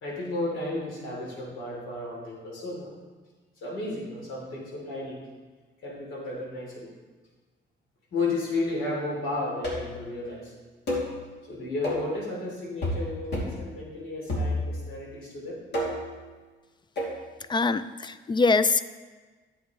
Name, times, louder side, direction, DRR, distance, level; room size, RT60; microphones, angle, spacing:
voice 1, 0.0-2.9 3.6-5.2 5.8-6.9 8.1-10.5 11.5-15.6, left 2 dB, 85° left, -4 dB, 3.1 m, -33 dB
sound 1, 9.6-10.0 10.9-11.1 11.8-12.1 12.8-13.1 13.3-13.6 14.3-14.9 15.7-16.1 17.0-17.2, left 1 dB, 60° left, 2.6 m, -29 dB
voice 2, 17.5-18.8, left 4 dB, 25° left, 13 dB, 0.3 m, -23 dB
10.5 x 7.5 x 3.1 m, 1.3 s
cardioid pair, 90°, 20 cm